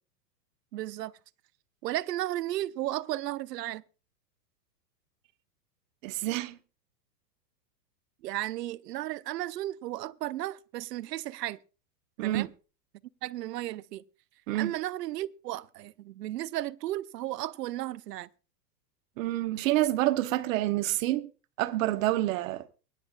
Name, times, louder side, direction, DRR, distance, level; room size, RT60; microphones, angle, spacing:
voice 1, 0.7-1.1 1.8-3.8 8.2-11.6 12.2-12.5 13.2-14.0 14.5-18.3, right 15 dB, 75° right, 0.8 m, -34 dB
voice 2, 6.0-6.6 12.2-12.5 14.5-14.7 19.2-21.3 21.6-22.6, right 15 dB, 50° right, 1.1 m, -28 dB
23.5 x 10.0 x 2.4 m
hypercardioid pair, 130°, 49 cm